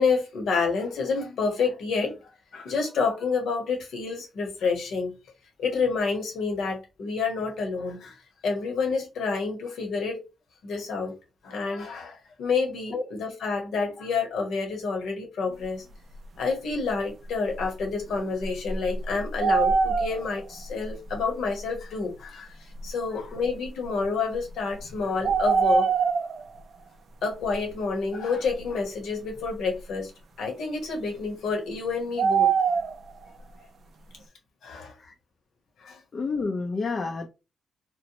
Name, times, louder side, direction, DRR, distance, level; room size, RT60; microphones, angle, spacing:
voice 1, 0.0-5.2 5.6-10.2 10.6-11.2 11.4-15.9 16.4-25.9 27.2-30.1 30.4-32.5 34.6-35.0 35.8-36.0, left 4 dB, 80° left, 0.9 m, -29 dB
sound 1, 17.6-17.7 18.4-20.4 21.1-21.2 22.8-22.9 25.2-26.4 32.2-33.0, right 5 dB, 65° right, 0.4 m, -22 dB
voice 2, 36.1-37.3, left 4 dB, 50° left, 0.4 m, -29 dB
3.0 x 2.0 x 2.7 m
cardioid pair, 65°, 0 cm